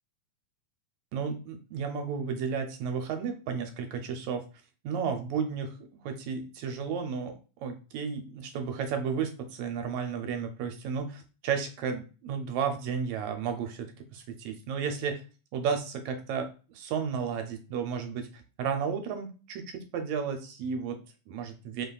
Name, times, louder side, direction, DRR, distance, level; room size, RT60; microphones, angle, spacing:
voice 1, 1.1-4.5 4.8-5.8 6.0-15.2 15.5-21.9, right 6 dB, 75° right, 6 dB, 1.7 m, -33 dB
5.1 x 4.0 x 2.3 m, 0.34 s
omnidirectional pair, 3.5 m